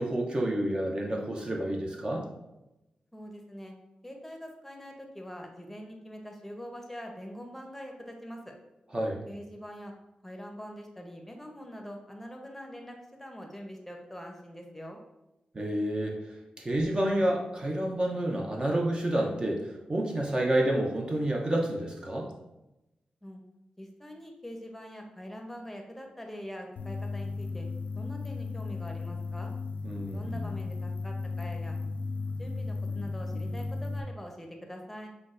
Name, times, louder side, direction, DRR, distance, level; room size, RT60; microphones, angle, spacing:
voice 1, 0.0-2.2 8.9-9.2 15.5-16.2 16.6-19.6 19.9-22.3 29.8-30.5, right 1 dB, 30° right, -1 dB, 0.7 m, -29 dB
voice 2, 3.1-3.7 4.0-8.5 9.3-9.9 10.2-15.0 23.2-23.4 23.8-27.7 28.0-29.5 30.1-31.8 32.4-35.1, equal, 10° left, 2 dB, 0.8 m, -43 dB
sound 1, 26.8-34.0, left 3 dB, 75° left, 0.4 m, -35 dB
5.8 x 2.3 x 2.5 m, 0.94 s
cardioid pair, 60°, 3 cm